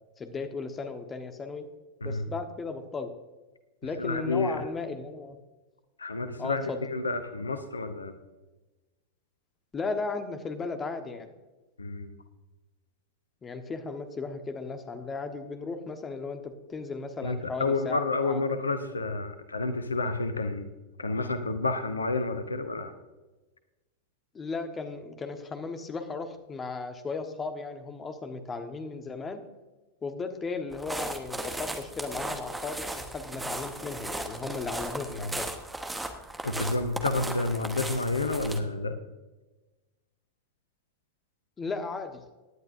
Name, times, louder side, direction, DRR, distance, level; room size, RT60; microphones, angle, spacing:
voice 1, 0.2-1.7 2.0-3.1 3.8-5.4 6.4-6.8 9.7-11.3 13.4-18.4 24.3-29.4 30.0-35.5 41.6-42.2, left 4 dB, 20° left, 7 dB, 1.3 m, -36 dB
voice 2, 4.0-4.6 6.0-8.1 11.8-12.1 17.2-20.7 21.0-22.9 36.4-39.0, left 3 dB, 75° left, 10 dB, 0.9 m, -30 dB
sound 1, 30.7-38.6, right 2 dB, 5° right, 1.2 m, -37 dB
17.5 x 11.0 x 2.6 m, 1.2 s
figure-of-eight pair, 90°, 0 cm